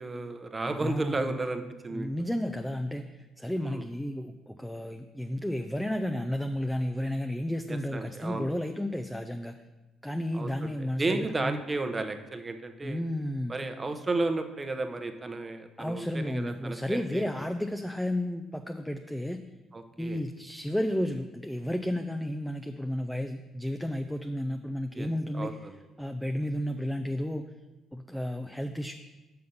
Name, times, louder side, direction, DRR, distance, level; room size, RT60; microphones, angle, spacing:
voice 1, 0.0-2.1 3.6-3.8 7.7-8.5 10.3-10.7 11.0-13.0 13.5-17.2 19.7-20.2 24.9-25.1 25.3-25.8, right 2 dB, 25° right, 7 dB, 0.8 m, -33 dB
voice 2, 0.7-1.3 1.9-9.5 10.0-11.6 12.8-13.5 15.8-19.4 20.0-25.6 26.0-27.5 27.9-28.9, left 1 dB, 5° left, 6 dB, 0.5 m, -32 dB
6.3 x 5.8 x 5.5 m, 1.1 s
supercardioid pair, 65°, 0 cm